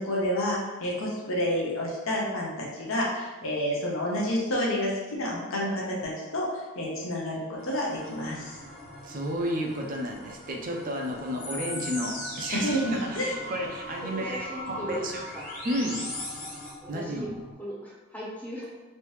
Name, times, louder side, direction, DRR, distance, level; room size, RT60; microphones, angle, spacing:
voice 1, 0.0-8.6 12.5-13.4, equal, 65° left, -3 dB, 0.7 m, -29 dB
sound 1, 7.6-16.7, left 1 dB, 40° left, 1.0 m, -41 dB
sound 2, 8.0-17.5, equal, 85° left, 1.1 m, -44 dB
voice 2, 9.0-15.2 15.6-16.1 16.9-17.3, equal, 40° right, 1 dB, 0.5 m, -32 dB
voice 3, 14.0-15.5 16.3-16.5 16.8-17.3 17.6-18.8, right 1 dB, 5° left, -6 dB, 0.7 m, -39 dB
3.3 x 2.7 x 3.1 m, 1.2 s
head